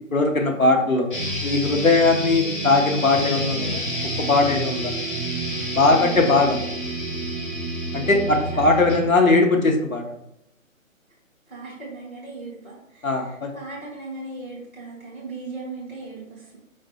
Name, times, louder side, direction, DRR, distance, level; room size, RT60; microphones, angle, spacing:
voice 1, 0.1-1.1 1.4-3.8 4.2-4.9 5.7-6.6 7.9-10.0 13.0-13.5, left 3 dB, 80° left, 2 dB, 1.0 m, -19 dB
sound 1, 1.1-9.1, right 1 dB, 40° left, 1.1 m, -28 dB
voice 2, 5.7-6.7 7.9-8.2 8.5-8.8 11.5-16.6, right 3 dB, ahead, -16 dB, 0.9 m, -38 dB
5.0 x 3.2 x 2.9 m, 0.79 s
figure-of-eight pair, 140°, 41 cm